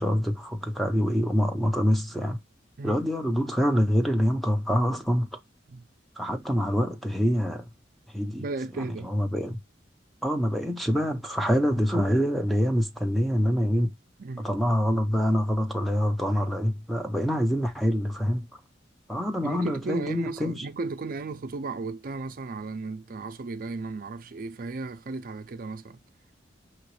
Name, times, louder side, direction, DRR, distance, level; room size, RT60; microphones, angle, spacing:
voice 1, 0.0-2.4 2.8-5.4 6.2-7.7 8.1-8.4 9.0-9.6 10.2-13.9 14.4-18.5 19.1-20.7, equal, ahead, 0.6 m, -25 dB
voice 2, 8.4-9.1 14.2-14.5 19.4-26.0, right 3 dB, 50° right, 0.4 m, -35 dB
5.7 x 3.0 x 3.1 m
head